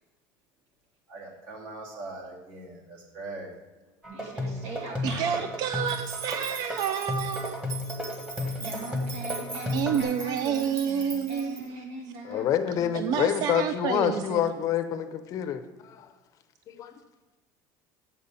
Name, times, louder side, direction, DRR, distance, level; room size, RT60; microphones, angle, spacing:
voice 1, 1.1-3.6 5.1-5.5 7.9-8.7, right 2 dB, 60° right, 0 dB, 2.1 m, -41 dB
sound 1, 4.0-10.0, left 1 dB, 10° right, 1.2 m, -33 dB
voice 2, 4.1-5.4 8.4-13.3, right 2 dB, 85° right, -1 dB, 2.5 m, -41 dB
voice 3, 5.0-7.6 9.7-11.6 12.9-14.5, right 8 dB, 40° right, 9 dB, 0.3 m, -29 dB
sound 2, 5.8-11.6, right 3 dB, 25° right, 1.5 m, -41 dB
voice 4, 12.2-16.1 16.7-16.9, left 9 dB, 35° left, 10 dB, 0.6 m, -27 dB
7.3 x 5.3 x 6.9 m, 1.1 s
cardioid pair, 160°, 9 cm